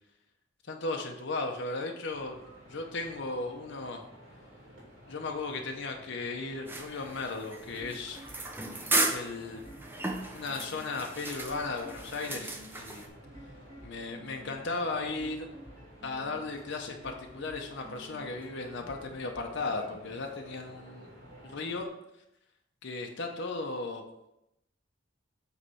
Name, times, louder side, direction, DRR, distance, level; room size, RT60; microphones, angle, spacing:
voice 1, 0.7-2.4 2.7-4.0 5.1-8.2 9.1-9.6 10.3-13.1 13.8-15.5 16.0-21.1 21.4-21.9 22.8-24.0, left 3 dB, 65° left, 3 dB, 0.8 m, -36 dB
sound 1, 2.1-21.9, equal, 70° right, 2.6 m, -53 dB
sound 2, 6.7-13.1, right 2 dB, 10° right, 0.6 m, -35 dB
sound 3, 7.6-20.5, equal, 30° right, 1.6 m, -52 dB
8.1 x 3.3 x 5.6 m, 0.86 s
head